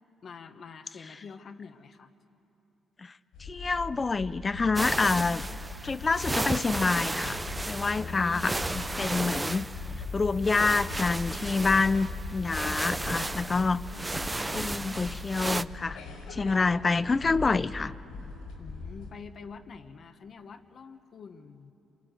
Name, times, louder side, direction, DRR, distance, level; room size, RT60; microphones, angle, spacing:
voice 1, 0.2-2.1 7.9-8.7 13.9-14.2 18.6-21.7, left 5 dB, 50° left, 9 dB, 1.4 m, -46 dB
sound 1, 3.3-19.1, left 3 dB, 90° left, 5.9 m, -40 dB
voice 2, 3.4-5.4 5.8-7.4 7.7-9.7 10.1-13.9 14.5-16.0 16.3-17.9, left 4 dB, 30° left, 16 dB, 0.6 m, -27 dB
sound 2, 4.8-15.6, right 2 dB, 15° right, 0.6 m, -34 dB
28.0 x 26.5 x 8.0 m, 3.0 s
cardioid pair, 90°, 0 cm